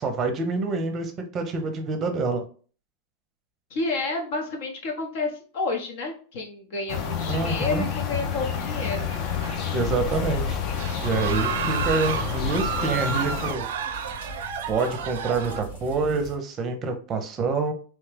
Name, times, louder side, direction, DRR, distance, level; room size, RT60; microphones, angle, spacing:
voice 1, 0.0-2.4 7.3-7.9 9.7-10.6 11.0-13.6 14.7-17.7, right 4 dB, 30° right, 6 dB, 0.6 m, -27 dB
voice 2, 3.7-9.1, left 3 dB, 65° left, 2 dB, 1.1 m, -30 dB
sound 1, 6.9-13.5, left 7 dB, 45° left, 0.5 m, -29 dB
sound 2, 9.0-9.9 10.2-10.3 10.7-15.6, right 7 dB, 75° right, 0.4 m, -31 dB
sound 3, 10.0-16.4, equal, 80° left, 1.5 m, -41 dB
3.1 x 2.2 x 3.3 m, 0.40 s
supercardioid pair, 135°, 0 cm